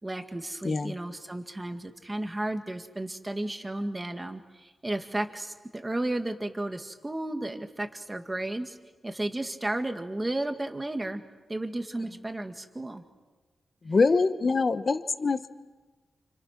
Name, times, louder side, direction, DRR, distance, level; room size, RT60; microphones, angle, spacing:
voice 1, 0.0-8.8 9.0-11.2 11.5-13.0, right 1 dB, 15° right, 6 dB, 1.9 m, -33 dB
voice 2, 13.8-15.5, left 4 dB, 35° left, 11 dB, 1.2 m, -24 dB
29.5 x 29.0 x 6.0 m, 1.3 s
wide cardioid pair, 155°, 0 cm